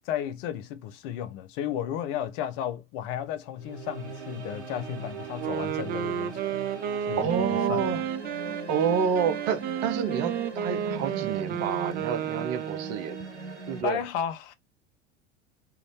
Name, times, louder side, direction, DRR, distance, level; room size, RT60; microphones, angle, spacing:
voice 1, 0.0-6.6 7.1-8.0 13.8-14.5, left 10 dB, 55° left, 0.8 m, -33 dB
sound 1, 3.6-13.8, right 3 dB, 85° right, 1.1 m, -39 dB
Wind instrument woodwind instrument, 5.4-13.3, right 9 dB, 30° right, 0.4 m, -32 dB
voice 2, 7.2-8.0 8.7-13.2 13.7-14.0, right 7 dB, 50° right, 0.8 m, -28 dB
3.5 x 2.5 x 3.2 m
hypercardioid pair, 75°, 34 cm